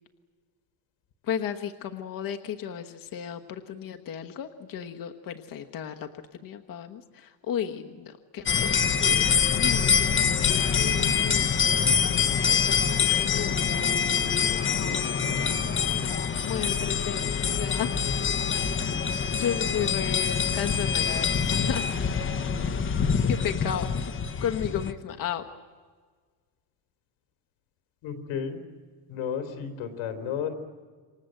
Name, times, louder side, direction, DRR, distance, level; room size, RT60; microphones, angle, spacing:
voice 1, 1.2-6.1 6.4-10.2 10.7-13.8 14.2-16.2 16.4-18.2 19.3-21.9 23.3-24.1 24.4-25.4, left 9 dB, 45° left, 5 dB, 1.3 m, -34 dB
sound 1, 8.5-24.9, left 6 dB, 25° left, 1.0 m, -25 dB
voice 2, 28.0-28.6 29.1-30.5, left 8 dB, 90° left, 7 dB, 4.0 m, -33 dB
28.0 x 24.5 x 7.9 m, 1.5 s
cardioid pair, 155°, 47 cm